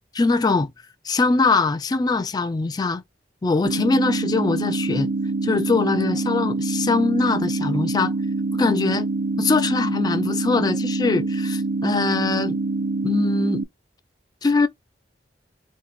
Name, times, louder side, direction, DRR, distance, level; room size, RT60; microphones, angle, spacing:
voice 1, 0.1-0.7 1.0-3.0 3.4-5.1 5.4-8.1 8.5-9.1 9.4-12.6 13.0-13.6 14.4-14.7, left 3 dB, 25° left, 0.3 m, -22 dB
sound 1, 3.6-13.6, right 3 dB, 60° right, 0.5 m, -25 dB
2.9 x 2.6 x 4.2 m
head